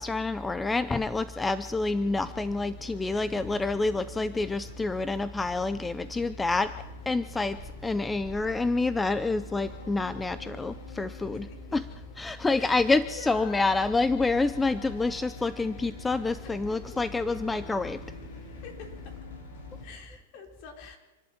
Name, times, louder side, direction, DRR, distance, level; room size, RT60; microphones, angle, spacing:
voice 1, 0.0-6.8 7.1-11.5 11.7-11.8 12.2-18.0, left 3 dB, 10° left, 13 dB, 0.6 m, -28 dB
sound 1, 1.8-19.8, left 3 dB, 70° left, 7.1 m, -46 dB
voice 2, 3.1-3.4 11.1-11.7 12.6-13.8 16.4-17.0 18.6-19.2 19.8-21.0, left 6 dB, 50° left, 2 dB, 4.9 m, -47 dB
27.0 x 11.5 x 9.0 m, 1.1 s
hypercardioid pair, 125°, 0 cm